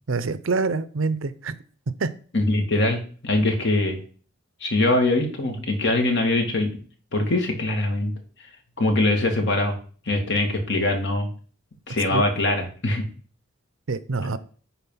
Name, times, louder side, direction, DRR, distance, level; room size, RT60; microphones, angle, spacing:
voice 1, 0.1-1.5 2.0-2.1 12.1-12.2 13.9-14.4, right 4 dB, 75° right, 0.7 m, -25 dB
voice 2, 2.3-4.0 4.6-6.7 7.1-8.1 8.8-9.8 10.1-11.3 11.9-13.0, left 2 dB, 60° left, 2.0 m, -22 dB
10.5 x 4.1 x 5.5 m
head